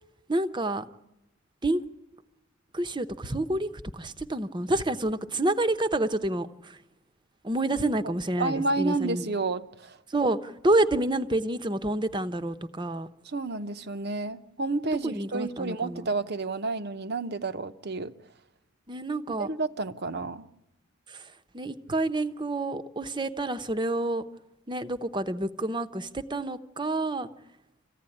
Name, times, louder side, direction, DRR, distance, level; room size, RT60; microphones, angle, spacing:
voice 1, 0.3-0.8 1.6-1.8 2.7-6.8 7.4-9.3 10.1-13.1 15.0-16.1 18.9-19.5 21.1-21.3 21.5-24.2 24.7-27.3, right 2 dB, 20° right, 0.8 m, -28 dB
voice 2, 8.0-10.0 13.2-18.1 19.4-20.5, right 3 dB, 50° right, 0.8 m, -30 dB
26.5 x 15.5 x 9.9 m
head